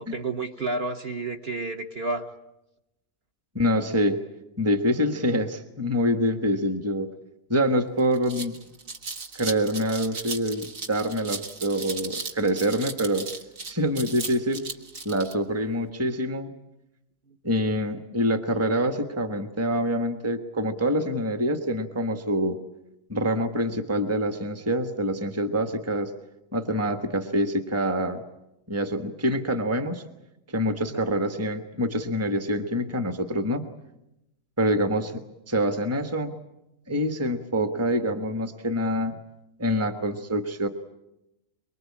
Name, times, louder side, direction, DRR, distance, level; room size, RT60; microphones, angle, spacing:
voice 1, 0.0-2.3 17.3-17.4 29.3-29.4 30.9-31.0, right 3 dB, 45° right, 3 dB, 1.5 m, -31 dB
voice 2, 3.5-4.2 4.6-7.1 7.5-8.6 9.3-13.3 13.7-14.6 15.0-16.5 17.4-22.6 23.1-26.1 26.5-28.2 28.7-30.0 30.5-33.6 34.6-36.3 36.9-39.2 39.6-40.7, equal, 10° right, 7 dB, 1.3 m, -26 dB
sound 1, 7.6-7.7 8.0-15.3, right 4 dB, 60° right, 2.1 m, -36 dB
24.0 x 23.5 x 8.6 m, 0.90 s
omnidirectional pair, 1.6 m